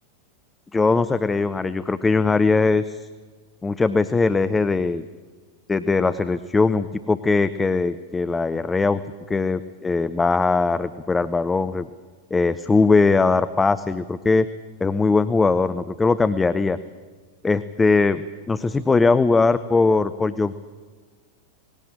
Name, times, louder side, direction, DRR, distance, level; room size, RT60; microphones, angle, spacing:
voice 1, 0.7-3.1 3.6-5.1 5.7-9.0 9.3-11.9 12.3-14.5 14.8-16.8 17.4-20.6, left 3 dB, 10° left, 13 dB, 0.6 m, -20 dB
19.5 x 17.0 x 8.9 m, 1.5 s
figure-of-eight pair, 90°, 0 cm